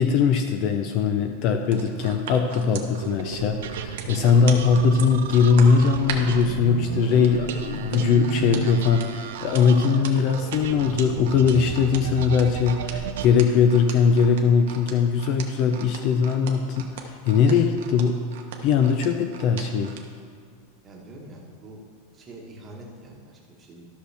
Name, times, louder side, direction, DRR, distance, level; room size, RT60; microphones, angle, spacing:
voice 1, 0.0-18.2 18.6-19.9, left 6 dB, 35° left, 6 dB, 0.4 m, -20 dB
sound 1, 1.7-6.4 7.2-20.0 20.5-20.6, right 9 dB, 65° right, 1.0 m, -38 dB
sound 2, 3.0-13.3, right 8 dB, 90° right, 0.5 m, -33 dB
voice 2, 20.8-21.8 22.1-23.9, right 1 dB, 15° right, -2 dB, 1.2 m, -43 dB
13.0 x 6.3 x 3.4 m, 2.1 s
supercardioid pair, 180°, 0 cm